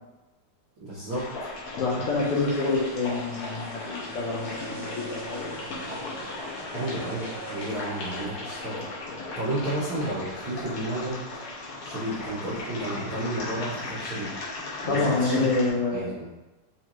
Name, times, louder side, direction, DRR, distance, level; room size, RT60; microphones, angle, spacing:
voice 1, 0.8-1.5 6.7-8.8 9.3-11.2 11.8-14.3 14.8-15.5 15.9-16.3, right 1 dB, 80° right, -8 dB, 1.1 m, -32 dB
sound 1, 1.1-15.7, left 2 dB, 70° left, 1.3 m, -37 dB
voice 2, 1.8-5.5 14.8-16.1, left 3 dB, 85° left, -6 dB, 1.2 m, -27 dB
sound 2, 2.2-8.3, equal, 40° right, 0.8 m, -43 dB
Bowed string instrument, 4.0-10.1, right 2 dB, 45° left, 1.5 m, -45 dB
4.7 x 3.2 x 3.0 m, 1.1 s
omnidirectional pair, 3.7 m